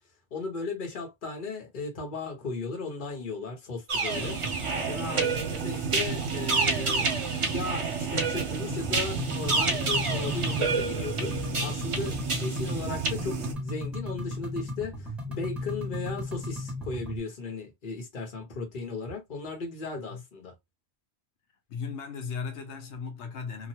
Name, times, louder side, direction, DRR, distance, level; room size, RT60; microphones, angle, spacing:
voice 1, 0.3-4.4 4.9-7.1 7.5-20.5, left 3 dB, 50° left, 1.1 m, -36 dB
sound 1, 3.9-13.1, right 3 dB, 40° right, 0.5 m, -30 dB
sound 2, 4.1-13.5, right 6 dB, 80° right, 1.1 m, -34 dB
sound 3, 8.7-17.2, left 1 dB, ahead, 1.5 m, -36 dB
voice 2, 21.7-23.7, left 5 dB, 85° left, 1.0 m, -36 dB
2.9 x 2.4 x 2.8 m
omnidirectional pair, 1.1 m